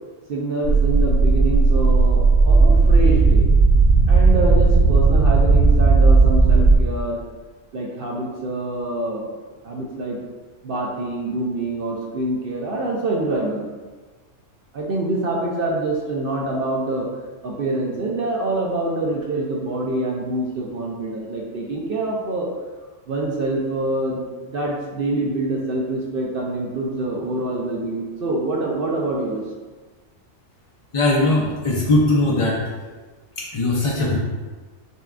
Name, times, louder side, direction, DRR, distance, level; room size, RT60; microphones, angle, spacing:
voice 1, 0.3-3.5 4.1-7.2 7.7-9.3 9.6-10.2 10.6-13.6 14.7-17.1 17.4-22.5 23.1-29.4, right 2 dB, 60° right, -2 dB, 0.6 m, -25 dB
sound 1, 0.6-6.8, right 3 dB, 85° right, 1.7 m, -14 dB
voice 2, 30.9-32.6 33.4-34.2, left 2 dB, 55° left, -4 dB, 0.3 m, -19 dB
6.6 x 2.2 x 2.4 m, 1.3 s
omnidirectional pair, 1.3 m